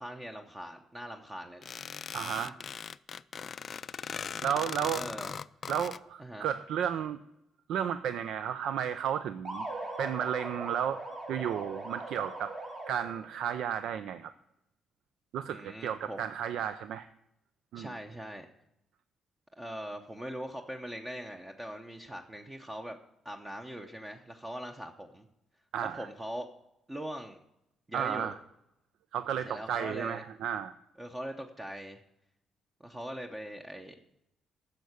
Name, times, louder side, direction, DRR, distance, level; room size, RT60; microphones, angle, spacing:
voice 1, 0.0-1.7 2.4-2.5 4.9-5.3 6.2-6.5 15.5-16.2 17.8-18.5 19.6-23.0 23.2-25.3 25.8-26.5 26.9-27.4 27.9-28.3 29.4-30.2 31.0-32.0 32.8-34.0, equal, 20° right, 4 dB, 0.9 m, -41 dB
sound 1, 1.6-6.0, left 6 dB, 45° left, 0.3 m, -39 dB
voice 2, 2.1-2.5 4.4-5.1 5.7-7.2 7.7-9.7 10.0-11.0 11.3-12.5 12.9-14.3 15.3-17.1 17.7-17.9 25.7-26.1 27.9-28.4 29.1-30.7, right 9 dB, 80° right, 12 dB, 0.4 m, -33 dB
sound 2, 9.5-13.3, right 2 dB, 45° right, 2.8 m, -40 dB
10.5 x 6.6 x 8.1 m, 0.82 s
cardioid pair, 90°, 0 cm